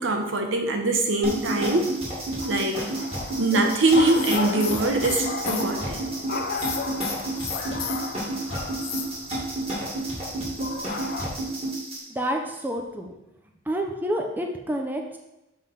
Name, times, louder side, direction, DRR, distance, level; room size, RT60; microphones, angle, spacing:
voice 1, 0.0-1.9 2.4-2.9 3.4-6.0, right 2 dB, 85° right, 4 dB, 1.0 m, -23 dB
sound 1, 1.2-12.0, right 2 dB, 35° right, 2.3 m, -31 dB
sound 2, 2.4-11.3, left 4 dB, 55° left, 0.5 m, -35 dB
sound 3, 4.0-5.7 6.5-8.1 8.7-9.0, left 9 dB, 80° left, 0.8 m, -34 dB
voice 2, 12.1-13.1 13.7-15.2, equal, 10° right, 2 dB, 0.6 m, -28 dB
7.3 x 3.4 x 5.8 m, 0.95 s
head